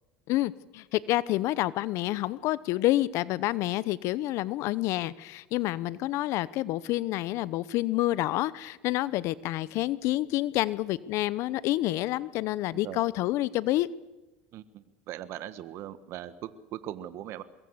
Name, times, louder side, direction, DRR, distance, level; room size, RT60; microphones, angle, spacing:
voice 1, 0.3-13.9, left 16 dB, 55° left, 19 dB, 0.9 m, -28 dB
voice 2, 14.5-17.4, right 12 dB, 55° right, 13 dB, 1.4 m, -40 dB
23.0 x 22.0 x 8.1 m, 1.1 s
supercardioid pair, 110°, 6 cm